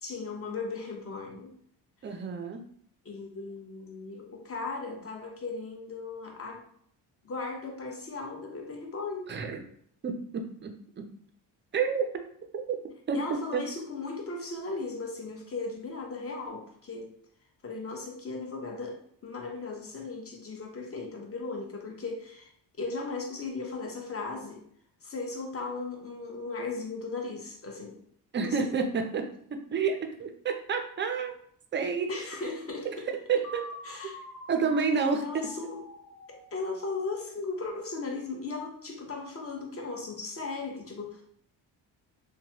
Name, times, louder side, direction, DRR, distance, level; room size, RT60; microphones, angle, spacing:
voice 1, 0.0-1.5 3.0-6.6 7.2-9.4 13.1-17.1 17.6-22.5 22.8-24.6 25.0-28.0 28.5-28.7 32.1-33.0 33.8-34.2 34.9-35.8 36.3-41.2, left 3 dB, 30° left, 1 dB, 0.8 m, -37 dB
voice 2, 2.0-2.6 9.3-9.6 10.0-11.1 11.7-12.1 12.5-12.8 13.1-13.6 28.3-31.4 31.7-32.1 33.3-33.6 34.0-34.1 34.5-35.2, right 5 dB, 25° right, 5 dB, 0.4 m, -29 dB
sound 1, 33.4-37.3, left 1 dB, 50° left, 1.3 m, -46 dB
3.0 x 2.2 x 2.8 m, 0.65 s
cardioid pair, 95°, 44 cm